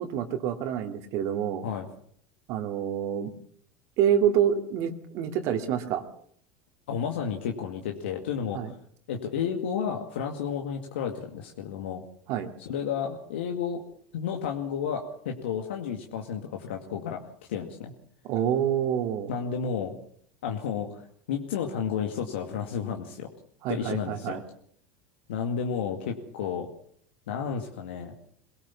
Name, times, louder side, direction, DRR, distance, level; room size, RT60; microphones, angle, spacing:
voice 1, 0.0-1.7 2.5-3.3 4.0-6.0 8.5-8.7 12.3-12.5 18.2-19.3 23.6-24.4, right 9 dB, 60° right, 5 dB, 2.4 m, -27 dB
voice 2, 6.9-8.6 9.1-12.0 12.6-13.8 14.1-17.2 17.5-17.9 19.3-19.9 20.4-23.3 23.7-24.4 25.3-26.7 27.3-28.1, left 7 dB, 85° left, 2 dB, 2.2 m, -32 dB
23.0 x 17.5 x 7.2 m, 0.62 s
supercardioid pair, 100°, 6 cm